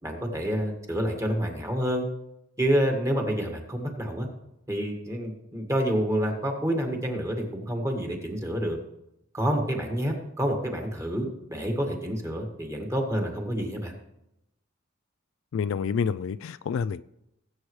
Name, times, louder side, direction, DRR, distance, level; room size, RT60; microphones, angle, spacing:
voice 1, 0.0-2.0 2.6-4.3 4.7-8.8 9.3-13.9, equal, 15° right, 2 dB, 1.8 m, -28 dB
voice 2, 15.5-17.0, left 6 dB, 65° left, 15 dB, 0.3 m, -28 dB
19.5 x 8.5 x 3.2 m, 0.86 s
head